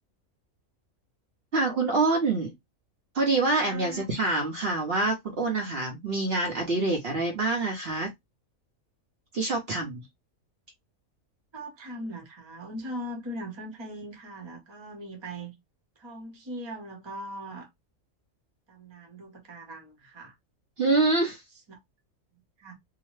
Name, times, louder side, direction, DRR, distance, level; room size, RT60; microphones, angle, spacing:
voice 1, 1.5-2.5 3.1-8.1 9.3-10.0 20.8-21.4, right 3 dB, 55° right, 0.8 m, -26 dB
voice 2, 3.6-4.0 11.5-15.5 16.0-17.7 18.7-20.3 21.7-21.8 22.3-22.7, right 1 dB, 25° right, 0.7 m, -40 dB
2.8 x 2.1 x 3.0 m
omnidirectional pair, 1.4 m